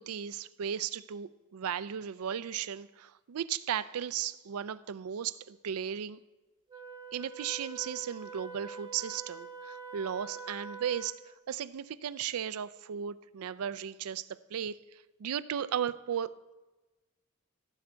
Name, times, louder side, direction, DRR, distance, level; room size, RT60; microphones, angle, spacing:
voice 1, 0.0-6.2 7.1-11.2 11.5-16.5, right 8 dB, 90° right, 17 dB, 0.4 m, -36 dB
Wind instrument woodwind instrument, 6.7-11.3, right 5 dB, 20° right, 2.2 m, -45 dB
17.0 x 8.0 x 4.5 m, 1.2 s
head